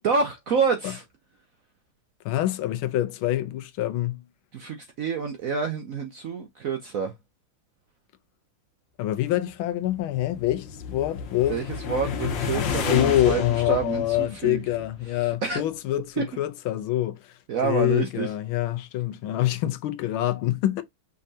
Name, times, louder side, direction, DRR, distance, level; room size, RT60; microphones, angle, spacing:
voice 1, 0.0-1.0 4.5-7.1 11.5-14.6 15.2-15.6 16.2-16.3 17.5-18.3, right 5 dB, 65° right, 0.8 m, -28 dB
voice 2, 2.2-4.2 9.0-11.6 12.5-17.3 17.6-20.8, left 14 dB, 85° left, 1.5 m, -26 dB
sound 1, 9.7-15.1, left 6 dB, 70° left, 1.7 m, -32 dB
5.4 x 3.4 x 2.7 m
omnidirectional pair, 2.2 m